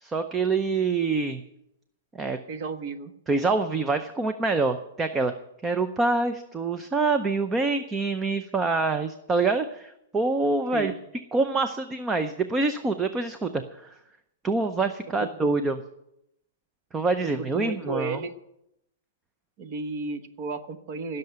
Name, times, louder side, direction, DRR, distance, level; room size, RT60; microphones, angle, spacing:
voice 1, 0.0-1.4 2.2-2.4 3.3-5.3 5.6-10.9 11.3-13.9 14.4-15.8 16.9-18.2, right 3 dB, 10° right, 9 dB, 0.6 m, -26 dB
voice 2, 2.5-3.1 10.7-11.0 15.2-15.3 17.2-18.3 19.6-21.2, right 3 dB, 35° right, 10 dB, 1.1 m, -33 dB
16.5 x 6.7 x 9.4 m, 0.81 s
hypercardioid pair, 165°, 0 cm